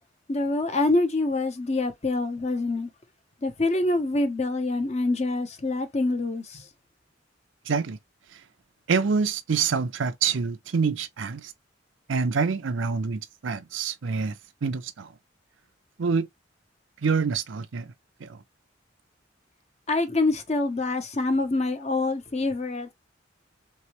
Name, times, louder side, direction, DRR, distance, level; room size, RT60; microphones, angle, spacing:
voice 1, 0.3-2.9 3.4-6.6 19.9-22.9, left 2 dB, 35° left, 0.8 m, -26 dB
voice 2, 7.7-8.0 8.9-11.5 12.1-15.1 16.0-16.3 17.0-17.9 18.2-18.4, right 5 dB, 80° right, 0.5 m, -26 dB
3.5 x 3.2 x 2.9 m
head